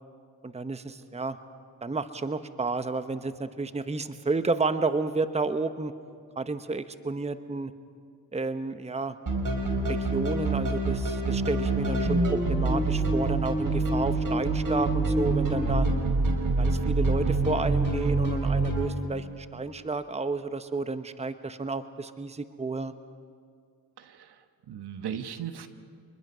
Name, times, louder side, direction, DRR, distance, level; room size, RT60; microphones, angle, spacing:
voice 1, 0.4-1.4 1.8-5.9 6.4-7.7 8.3-9.2 9.9-15.9 16.6-22.9, right 3 dB, 15° right, 11 dB, 1.0 m, -31 dB
sound 1, 9.3-18.9, right 2 dB, 50° right, 4.1 m, -26 dB
voice 2, 24.0-25.7, right 8 dB, 65° right, 9 dB, 1.4 m, -38 dB
25.5 x 21.0 x 5.6 m, 2.2 s
supercardioid pair, 50°, 43 cm